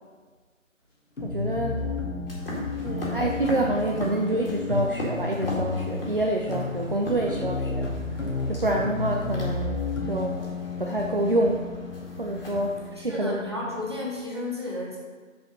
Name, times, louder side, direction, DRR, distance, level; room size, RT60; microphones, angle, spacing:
sound 1, 1.2-14.0, left 3 dB, 65° left, 1.3 m, -32 dB
voice 1, 1.2-1.9 2.8-7.9 8.5-9.8 10.1-10.3 10.8-11.7 12.2-13.4, right 1 dB, 45° right, 0 dB, 0.5 m, -27 dB
sound 2, 2.3-12.9, equal, 45° left, 2.1 m, -38 dB
voice 2, 13.0-15.0, left 2 dB, 20° right, -5 dB, 0.9 m, -32 dB
5.6 x 5.2 x 5.3 m, 1.4 s
figure-of-eight pair, 160°, 40 cm